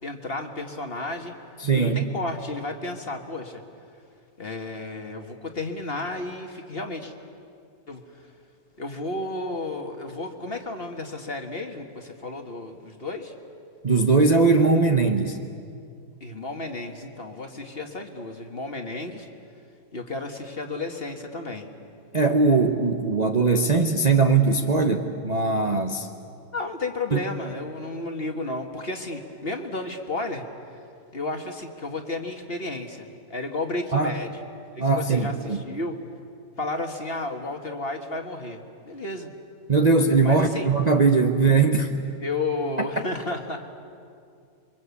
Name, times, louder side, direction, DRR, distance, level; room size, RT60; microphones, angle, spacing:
voice 1, 0.0-1.4 1.7-3.6 4.4-7.1 7.9-8.2 8.8-13.3 16.2-19.3 19.9-21.7 26.5-30.5 31.1-34.4 34.8-36.0 36.6-39.3 40.2-40.7 42.2-43.6, left 2 dB, 35° left, 4 dB, 1.8 m, -32 dB
voice 2, 1.6-2.1 13.8-15.4 22.1-26.1 27.1-27.2 33.9-34.2 34.8-35.6 39.7-41.9 42.8-42.9, right 4 dB, 30° right, 4 dB, 0.9 m, -20 dB
28.5 x 23.5 x 8.4 m, 2.4 s
omnidirectional pair, 1.8 m